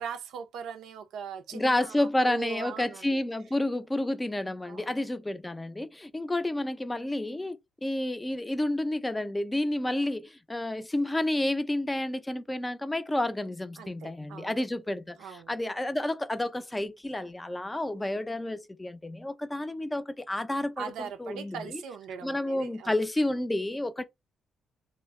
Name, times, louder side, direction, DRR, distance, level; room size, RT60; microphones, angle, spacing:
voice 1, 0.0-3.2 4.7-5.0 13.8-14.6 15.2-15.5 20.8-22.9, right 6 dB, 80° right, 0.4 m, -40 dB
voice 2, 1.5-21.8 22.2-24.0, left 1 dB, 15° left, 0.4 m, -30 dB
2.1 x 2.0 x 3.4 m
cardioid pair, 75°, 0 cm